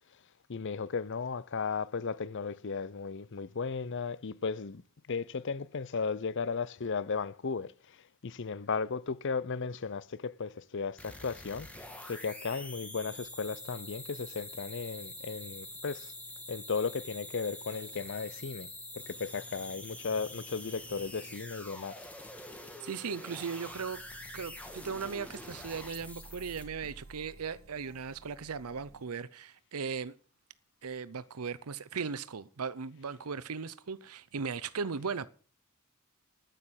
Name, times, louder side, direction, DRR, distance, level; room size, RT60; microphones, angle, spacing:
voice 1, 0.5-4.8 5.1-7.7 8.2-11.7 12.0-16.1 16.5-18.7 18.9-22.0, left 5 dB, 55° left, 0.6 m, -35 dB
sound 1, 11.0-26.9, left 1 dB, 5° left, 2.1 m, -46 dB
voice 2, 22.8-24.0 24.3-30.1 30.8-35.3, right 5 dB, 85° right, 0.7 m, -37 dB
sound 2, 23.7-29.0, right 2 dB, 65° right, 1.2 m, -55 dB
9.8 x 9.3 x 8.0 m
head